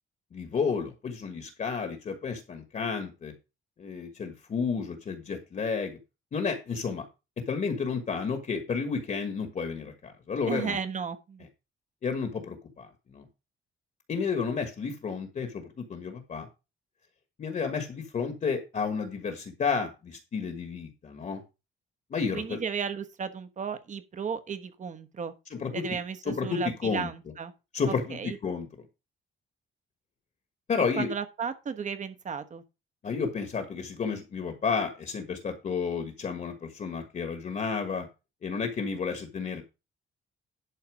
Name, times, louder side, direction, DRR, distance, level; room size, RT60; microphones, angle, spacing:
voice 1, 0.3-3.3 3.8-6.0 6.3-7.0 7.5-10.8 12.0-13.2 14.1-16.5 17.4-21.4 22.1-22.6 25.5-25.8 26.3-27.1 27.7-28.7 30.7-31.1 33.0-38.1 38.4-39.6, left 5 dB, 35° left, 1.5 m, -31 dB
voice 2, 10.5-11.5 22.3-25.3 25.7-27.5 27.9-28.4 31.0-32.6, right 6 dB, 35° right, 1.2 m, -34 dB
11.5 x 4.2 x 6.2 m
cardioid pair, 160°, 21 cm